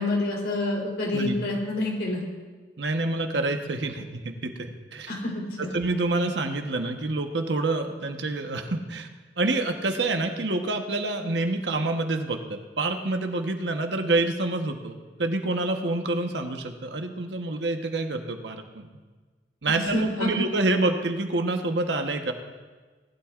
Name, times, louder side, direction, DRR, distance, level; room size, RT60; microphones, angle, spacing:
voice 1, 0.0-2.2 5.1-5.7 19.7-20.5, left 2 dB, 90° left, -2 dB, 3.8 m, -28 dB
voice 2, 2.8-5.1 5.6-9.1 9.4-18.9 19.6-22.3, right 2 dB, 80° right, 5 dB, 1.1 m, -27 dB
19.5 x 11.5 x 2.5 m, 1.4 s
head